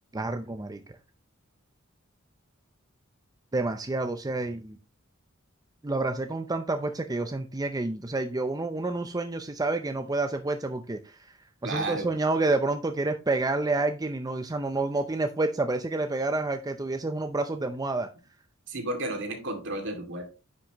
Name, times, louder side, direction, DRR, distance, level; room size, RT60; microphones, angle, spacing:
voice 1, 0.1-0.8 3.5-4.8 5.8-18.1, right 2 dB, 20° right, 0.6 m, -29 dB
voice 2, 11.6-12.1 18.7-20.2, right 1 dB, 60° right, 2.5 m, -32 dB
9.9 x 6.0 x 3.0 m
head